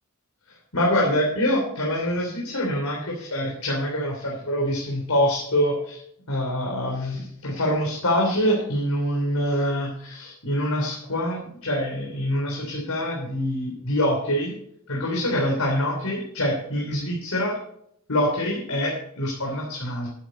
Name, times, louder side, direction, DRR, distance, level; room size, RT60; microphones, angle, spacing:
voice 1, 0.7-6.0 6.3-14.5 14.9-17.6 18.1-20.1, equal, 85° left, -1 dB, 3.5 m, -25 dB
12.5 x 11.0 x 4.0 m, 0.69 s
head